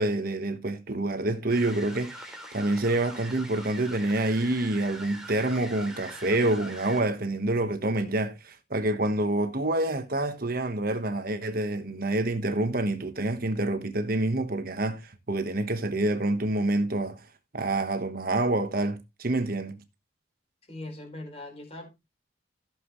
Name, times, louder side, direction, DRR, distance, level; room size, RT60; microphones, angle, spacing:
voice 1, 0.0-17.2 17.5-19.8, right 2 dB, 50° right, 1.3 m, -27 dB
sound 1, 1.5-7.0, right 1 dB, 5° right, 2.9 m, -43 dB
voice 2, 20.7-21.9, left 2 dB, 30° left, 4.7 m, -40 dB
15.0 x 7.6 x 3.1 m
head